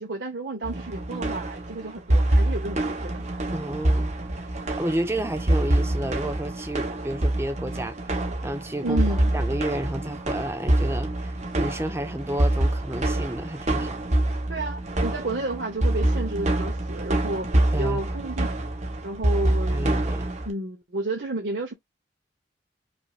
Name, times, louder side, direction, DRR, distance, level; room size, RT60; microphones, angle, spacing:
voice 1, 0.0-3.2 8.8-9.3 14.5-18.5 19.0-20.0 20.4-21.7, right 2 dB, 65° right, 0.9 m, -31 dB
sound 1, 0.6-20.5, right 1 dB, 40° right, 0.9 m, -26 dB
voice 2, 3.5-4.1 4.7-14.0 17.7-18.0 19.7-20.5, right 1 dB, 15° right, 0.6 m, -31 dB
5.2 x 2.7 x 2.4 m
head